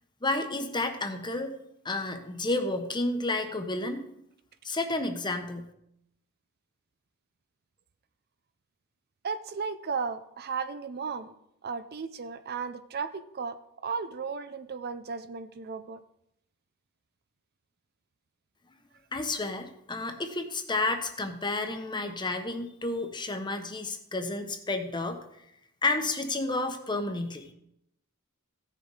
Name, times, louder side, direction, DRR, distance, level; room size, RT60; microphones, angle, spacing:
voice 1, 0.2-1.5 1.8-4.0 4.6-5.7 19.1-25.2 25.8-27.5, left 2 dB, 20° left, 6 dB, 1.1 m, -31 dB
voice 2, 9.2-11.3 11.6-13.6 13.8-16.0, right 5 dB, 45° right, 11 dB, 0.6 m, -35 dB
16.5 x 6.7 x 4.9 m, 0.78 s
head